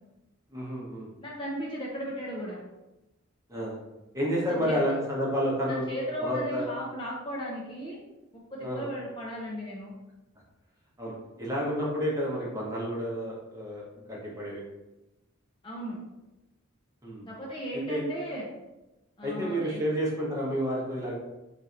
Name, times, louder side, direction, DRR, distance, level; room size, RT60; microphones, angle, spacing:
voice 1, 0.5-1.1 3.5-3.8 4.1-5.8 6.2-6.7 8.6-8.9 11.0-14.6 17.0-17.3 17.9-18.0 19.2-21.2, equal, 15° right, -5 dB, 0.8 m, -30 dB
voice 2, 1.2-2.6 4.5-4.8 5.7-8.0 8.3-9.9 15.6-16.0 17.3-18.5 19.2-19.8, equal, 25° left, -4 dB, 0.5 m, -36 dB
2.7 x 2.5 x 4.2 m, 1.0 s
head